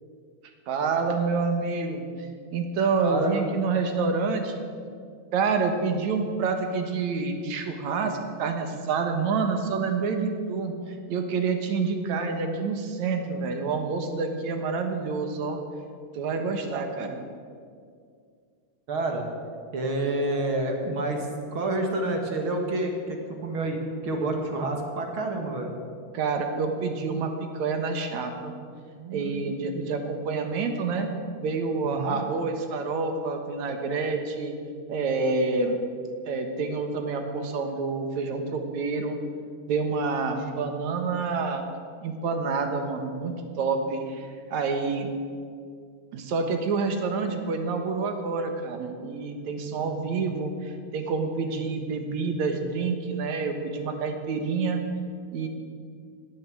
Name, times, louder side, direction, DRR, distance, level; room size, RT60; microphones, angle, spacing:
voice 1, 0.7-2.1 2.5-4.6 5.3-15.6 16.1-17.2 26.1-28.6 29.1-31.1 31.4-34.6 34.9-35.8 36.3-39.2 39.7-41.6 42.0-45.1 46.1-54.8 55.3-55.5, right 4 dB, 70° right, 5 dB, 2.7 m, -28 dB
voice 2, 3.0-3.6 18.9-19.3 19.7-23.8 24.0-25.7 29.0-29.4 31.8-32.2 49.7-50.1, right 2 dB, 45° right, 2 dB, 2.3 m, -29 dB
16.5 x 10.5 x 7.7 m, 2.2 s
omnidirectional pair, 3.5 m